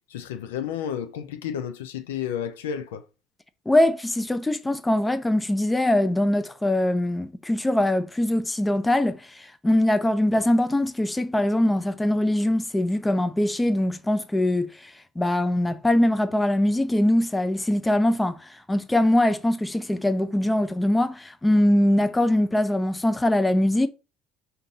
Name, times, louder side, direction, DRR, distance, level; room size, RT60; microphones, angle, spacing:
voice 1, 0.1-3.0, left 9 dB, 80° left, 0.5 m, -31 dB
voice 2, 3.7-23.9, left 1 dB, 10° left, 0.6 m, -22 dB
5.2 x 2.8 x 3.6 m
hypercardioid pair, 65°, 0 cm